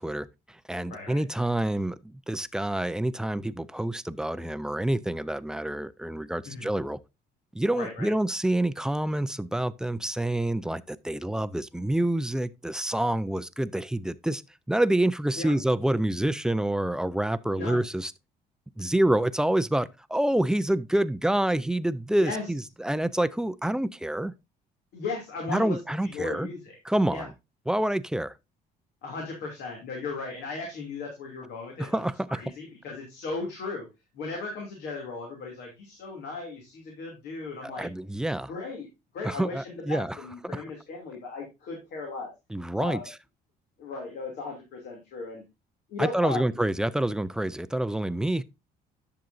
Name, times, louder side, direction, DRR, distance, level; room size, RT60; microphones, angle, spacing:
voice 1, 0.0-7.0 7.5-14.4 14.7-18.1 18.8-24.3 25.5-26.5 26.8-27.3 27.7-28.3 31.8-32.4 37.6-38.5 39.2-40.2 40.4-40.6 42.5-43.1 46.0-48.4, right 1 dB, 5° right, 0.4 m, -27 dB
voice 2, 7.8-8.1 15.4-15.5 17.6-17.8 22.2-22.5 24.9-25.8 26.0-26.8 27.1-27.3 29.0-31.9 32.3-33.8 34.1-37.9 38.5-38.9 39.1-42.3 42.8-43.1 43.8-45.4 45.9-46.5, left 4 dB, 75° left, 2.7 m, -36 dB
10.5 x 6.8 x 2.6 m
cardioid pair, 110°, 17 cm